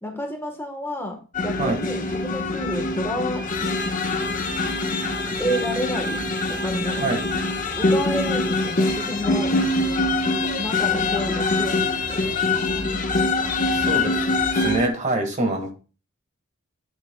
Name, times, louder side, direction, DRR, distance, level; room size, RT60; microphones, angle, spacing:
voice 1, 0.0-3.4 5.4-6.2 6.5-7.1 7.7-9.5 10.6-12.2, equal, 10° left, 3 dB, 1.2 m, -30 dB
sound 1, 1.3-14.9, left 2 dB, 40° left, 1.2 m, -24 dB
voice 2, 13.7-14.2 14.5-15.7, right 2 dB, 35° right, 4 dB, 1.6 m, -25 dB
9.7 x 9.4 x 2.2 m, 0.34 s
head